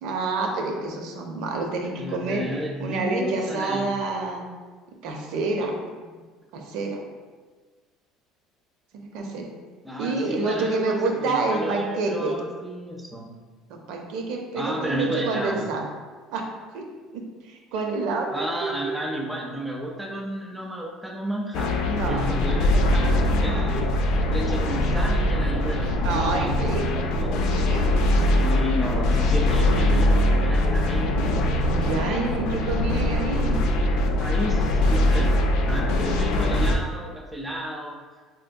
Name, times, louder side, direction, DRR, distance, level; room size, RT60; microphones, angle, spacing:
voice 1, 0.0-2.4 2.8-4.5 5.0-6.1 6.5-7.0 8.9-9.5 10.0-12.4 13.7-15.8 16.3-16.5 16.7-16.9 17.1-19.1 21.9-22.3 23.3-23.7 26.0-27.1 27.4-28.0 31.7-33.6, right 3 dB, 75° right, 2 dB, 0.5 m, -28 dB
voice 2, 2.0-3.9 9.8-13.3 14.6-15.7 18.3-27.5 28.4-31.2 34.2-38.0, equal, 5° right, 0 dB, 0.4 m, -32 dB
sound 1, 21.5-36.8, left 1 dB, 70° left, 0.3 m, -22 dB
3.5 x 2.6 x 2.2 m, 1.4 s
cardioid pair, 130°, 0 cm